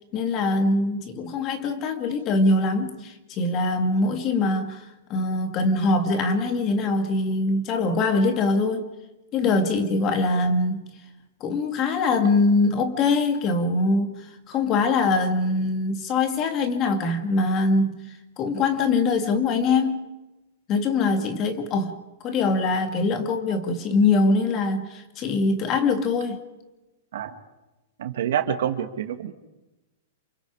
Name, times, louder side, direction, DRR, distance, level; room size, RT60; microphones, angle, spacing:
voice 1, 0.1-8.9 9.3-10.9 11.4-18.0 18.4-20.1 20.7-26.4, left 3 dB, 30° left, 6 dB, 2.3 m, -23 dB
voice 2, 28.0-29.3, right 9 dB, 70° right, 7 dB, 2.2 m, -27 dB
28.0 x 24.5 x 5.0 m, 1.0 s
hypercardioid pair, 145°, 0 cm